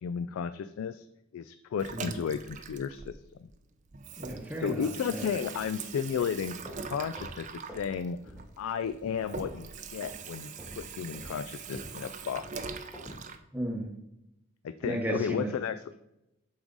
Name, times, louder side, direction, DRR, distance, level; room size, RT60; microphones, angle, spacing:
voice 1, 0.0-1.1 1.3-3.2 4.6-7.5 7.8-8.2 8.6-10.5 10.8-12.5 14.6-15.8, left 7 dB, 75° left, 12 dB, 0.3 m, -33 dB
Water tap faucet / Sink (filling or washing), 1.8-3.6 3.9-13.4, right 5 dB, 35° right, 0.5 m, -42 dB
voice 2, 4.2-5.3 13.5-13.9 14.8-15.5, right 1 dB, 10° right, 2 dB, 0.9 m, -34 dB
sound 1, 6.6-8.0 8.2-8.5 8.8-9.7 10.0-10.2 10.6-13.3, equal, 10° left, 1.5 m, -47 dB
7.0 x 4.8 x 3.9 m, 0.87 s
head